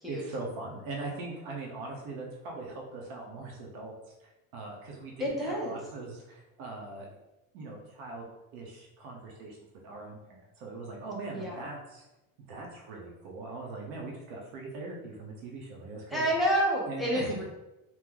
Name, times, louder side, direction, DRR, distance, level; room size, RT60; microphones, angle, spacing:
voice 1, 0.1-7.1 7.5-8.3 8.5-9.6 9.8-12.0 12.5-16.2 16.9-17.4, right 3 dB, 90° right, -1 dB, 0.8 m, -41 dB
voice 2, 5.2-5.8 11.3-11.7 16.1-17.4, equal, ahead, -5 dB, 0.4 m, -29 dB
3.0 x 2.0 x 3.6 m, 0.97 s
cardioid pair, 170°, 36 cm